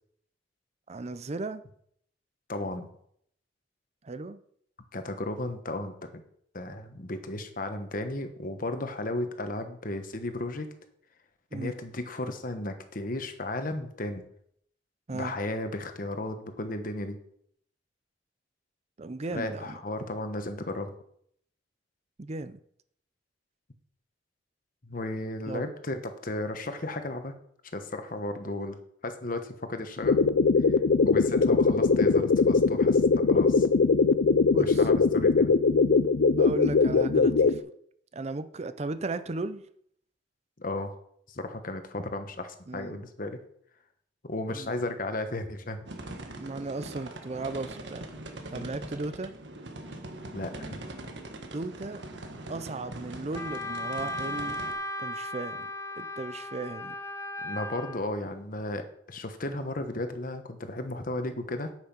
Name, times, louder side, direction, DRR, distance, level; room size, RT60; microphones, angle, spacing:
voice 1, 0.9-1.6 4.0-4.4 11.5-11.7 15.1-15.3 19.0-19.8 22.2-22.6 25.5-25.6 34.5-34.9 36.4-37.7 38.1-39.6 42.7-43.0 44.5-44.7 46.2-48.0 48.5-49.3 51.5-52.0 52.5-54.6 55.0-55.7 56.0-56.9, right 3 dB, 35° right, 13 dB, 0.5 m, -36 dB
voice 2, 2.5-2.9 4.9-6.2 6.5-10.7 11.5-14.2 15.1-17.2 19.3-20.9 24.8-27.3 27.7-28.8 29.0-30.2 31.0-33.7 34.6-35.5 40.6-40.9 41.3-43.4 44.2-45.9 48.5-48.7 50.3-50.8 57.4-61.7, left 2 dB, 50° left, 8 dB, 1.2 m, -34 dB
sound 1, 30.0-37.6, left 4 dB, 80° left, 0.5 m, -21 dB
sound 2, 45.9-54.7, right 1 dB, 80° right, 1.4 m, -42 dB
Wind instrument woodwind instrument, 53.4-58.0, left 1 dB, 15° left, 0.6 m, -36 dB
8.9 x 8.0 x 5.4 m, 0.67 s
head